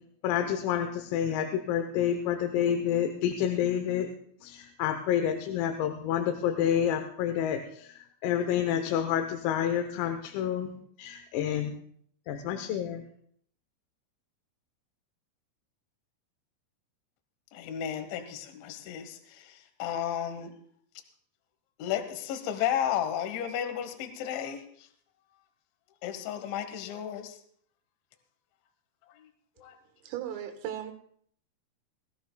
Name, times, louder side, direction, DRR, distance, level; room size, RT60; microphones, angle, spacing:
voice 1, 0.2-4.1 4.4-10.7 11.0-11.7 12.3-13.0, left 9 dB, 90° left, 6 dB, 3.6 m, -29 dB
voice 2, 17.5-20.5 21.8-24.6 26.0-27.4 29.6-29.7, left 10 dB, 75° left, 8 dB, 3.3 m, -33 dB
voice 3, 30.0-30.9, right 10 dB, 85° right, 5 dB, 3.9 m, -36 dB
21.0 x 15.0 x 2.3 m, 0.63 s
omnidirectional pair, 5.9 m